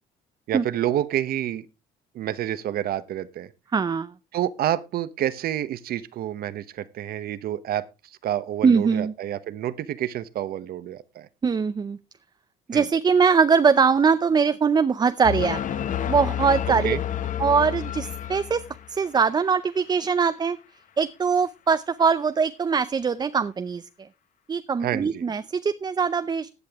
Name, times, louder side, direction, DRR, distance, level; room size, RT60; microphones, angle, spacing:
voice 1, 0.5-1.7 2.1-3.5 4.3-7.8 8.2-11.3 12.7-12.8 16.8-17.0 24.8-25.2, right 12 dB, 65° right, 1.0 m, -28 dB
voice 2, 3.7-4.1 8.6-9.1 11.4-12.0 12.7-17.0 17.4-20.6 21.0-24.1 24.5-26.5, right 5 dB, 25° right, 0.5 m, -22 dB
sound 1, 15.2-19.0, left 10 dB, 50° left, 1.0 m, -29 dB
15.0 x 8.6 x 3.5 m
cardioid pair, 110°, 17 cm